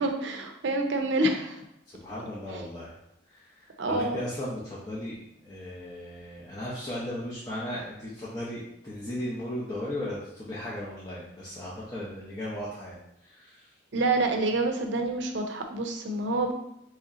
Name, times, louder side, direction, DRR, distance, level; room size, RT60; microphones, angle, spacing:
voice 1, 0.0-1.6 2.5-2.6 3.8-4.2 13.9-16.5, right 2 dB, 65° right, 5 dB, 0.5 m, -27 dB
voice 2, 1.9-2.9 3.3-13.7, left 1 dB, 20° left, -8 dB, 0.6 m, -36 dB
3.2 x 2.8 x 3.6 m, 0.79 s
head